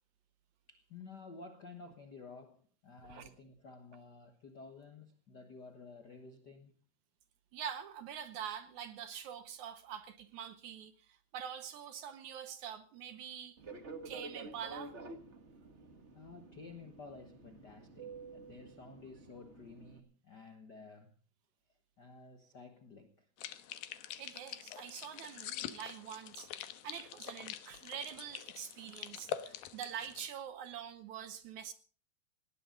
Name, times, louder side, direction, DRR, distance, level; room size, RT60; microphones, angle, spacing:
voice 1, 0.7-6.7 16.1-21.1 22.0-23.3, left 4 dB, 65° left, 1.0 m, -53 dB
voice 2, 7.5-13.6 14.1-14.9 24.2-26.5 26.8-31.7, right 8 dB, 70° right, 2.0 m, -45 dB
Fixed-wing aircraft airplane, 13.6-20.0, right 3 dB, 85° right, 0.6 m, -50 dB
sound 1, 23.4-30.3, left 11 dB, 90° left, 2.9 m, -45 dB
19.0 x 17.5 x 3.9 m
omnidirectional pair, 4.1 m